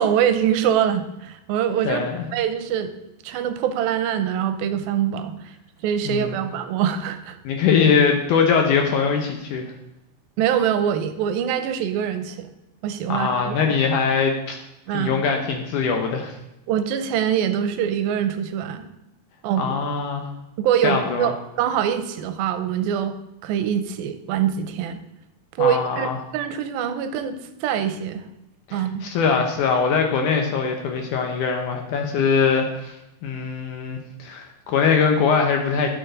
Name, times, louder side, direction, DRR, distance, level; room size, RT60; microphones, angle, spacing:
voice 1, 0.0-2.1 2.3-2.9 3.2-5.4 5.8-7.4 10.4-12.5 12.8-13.7 14.9-15.1 16.7-18.9 19.4-19.8 20.6-23.1 23.4-25.0 25.6-28.2 28.7-29.1, right 9 dB, 85° right, 10 dB, 2.4 m, -24 dB
voice 2, 1.8-2.3 6.1-6.3 7.4-9.6 13.1-14.6 14.9-16.4 19.6-20.3 20.8-21.3 25.6-26.2 28.7-32.9 33.2-35.9, left 5 dB, 70° left, 3 dB, 2.0 m, -22 dB
12.0 x 6.7 x 3.9 m, 0.91 s
omnidirectional pair, 4.3 m